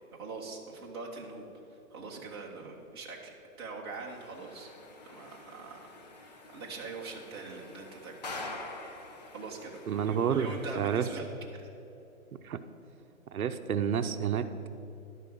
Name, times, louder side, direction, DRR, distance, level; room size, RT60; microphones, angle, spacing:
voice 1, 0.1-1.4 1.9-4.8 5.0-5.9 6.2-8.1 9.3-11.3, right 3 dB, 20° right, -3 dB, 0.9 m, -42 dB
sound 1, 4.1-11.2, left 2 dB, 30° left, 0.8 m, -46 dB
voice 2, 9.9-10.5 10.8-11.1 12.4-12.6 13.3-14.7, right 8 dB, 75° right, 9 dB, 0.7 m, -29 dB
11.0 x 5.6 x 7.6 m, 2.9 s
hypercardioid pair, 170°, 43 cm